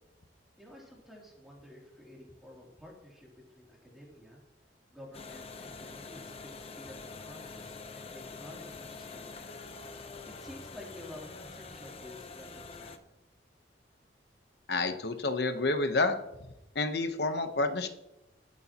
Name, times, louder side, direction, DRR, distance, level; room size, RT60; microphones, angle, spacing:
voice 1, 0.6-4.4 4.9-9.5 10.3-12.9, left 1 dB, ahead, -3 dB, 3.1 m, -51 dB
sound 1, 5.1-13.0, left 4 dB, 35° left, 0.8 m, -45 dB
voice 2, 14.7-16.2 16.7-17.9, left 3 dB, 65° left, 7 dB, 1.0 m, -29 dB
21.0 x 8.4 x 3.0 m, 0.92 s
head